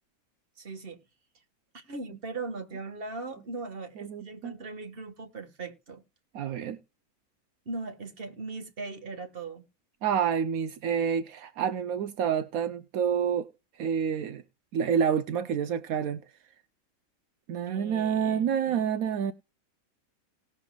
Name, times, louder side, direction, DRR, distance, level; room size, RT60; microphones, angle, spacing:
voice 1, 0.6-1.0 1.7-6.0 7.7-9.6 17.6-18.9, right 3 dB, 40° right, 1.8 m, -39 dB
voice 2, 4.0-4.5 6.3-6.8 10.0-13.5 13.8-14.4 14.7-16.2 17.5-19.3, right 7 dB, 75° right, 1.2 m, -28 dB
18.5 x 7.0 x 2.3 m
omnidirectional pair, 1.5 m